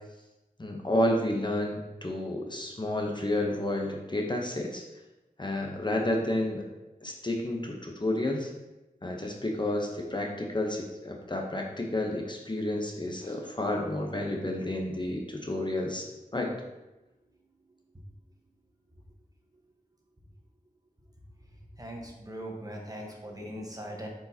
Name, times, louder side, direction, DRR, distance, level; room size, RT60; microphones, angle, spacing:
voice 1, 0.6-4.8 5.4-6.6 7.0-8.5 9.0-16.1 16.3-16.5, left 1 dB, 30° left, 1 dB, 0.9 m, -30 dB
voice 2, 21.8-24.1, equal, 25° right, 0 dB, 1.2 m, -40 dB
7.4 x 4.7 x 2.9 m, 1.0 s
wide cardioid pair, 60°, 15 cm